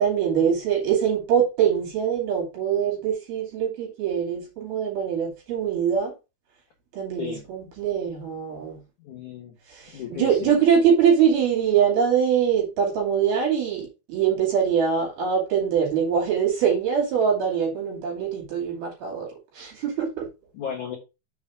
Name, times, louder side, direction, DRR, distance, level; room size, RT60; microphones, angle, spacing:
voice 1, 0.0-6.1 6.9-8.8 9.7-19.3 19.6-20.3, right 7 dB, 55° right, 3.8 m, -23 dB
voice 2, 9.0-9.5 9.9-10.6 20.5-21.0, left 8 dB, 60° left, 2.1 m, -34 dB
7.0 x 4.1 x 4.9 m
omnidirectional pair, 5.8 m